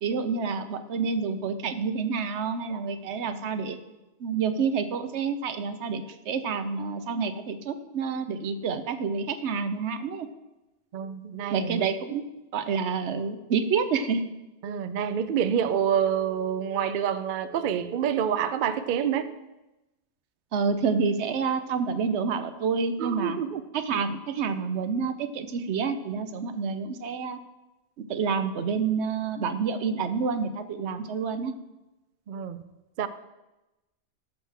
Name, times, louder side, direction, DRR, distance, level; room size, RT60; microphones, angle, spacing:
voice 1, 0.0-3.8 4.2-10.3 11.5-12.2 12.5-14.3 20.5-23.4 23.7-27.4 28.1-31.5, right 5 dB, 80° right, 1.0 m, -28 dB
voice 2, 10.9-11.9 14.6-19.3 23.0-23.6 32.3-32.6 33.0-33.1, right 8 dB, 60° right, 0.6 m, -27 dB
12.5 x 6.4 x 3.4 m
omnidirectional pair, 1.2 m